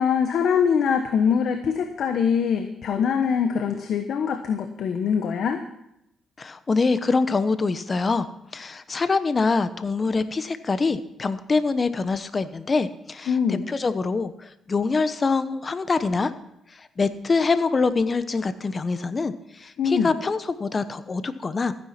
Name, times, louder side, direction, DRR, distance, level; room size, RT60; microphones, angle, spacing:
voice 1, 0.0-5.6 13.3-13.6 19.8-20.1, left 7 dB, 65° left, 6 dB, 1.2 m, -23 dB
voice 2, 6.4-8.3 8.5-16.3 16.7-21.7, left 4 dB, 35° left, 12 dB, 1.0 m, -24 dB
14.5 x 10.0 x 5.9 m, 0.80 s
cardioid pair, 90°, 0 cm